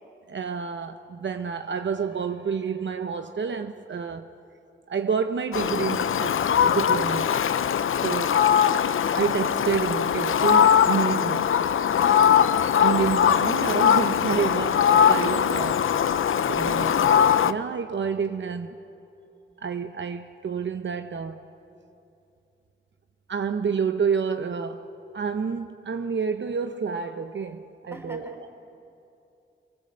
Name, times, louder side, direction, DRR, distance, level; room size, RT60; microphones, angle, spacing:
voice 1, 0.3-4.3 4.9-7.3 8.0-8.4 9.1-11.5 12.8-15.8 16.1-16.2 16.5-18.8 19.6-21.4 23.3-24.9 25.1-28.4, right 6 dB, 70° right, 0.8 m, -29 dB
Fowl, 5.5-17.5, left 8 dB, 90° left, 0.6 m, -21 dB
voice 2, 12.0-12.6 27.9-28.4, right 1 dB, 10° right, 3.6 m, -42 dB
28.5 x 19.0 x 7.8 m
wide cardioid pair, 95°, 20 cm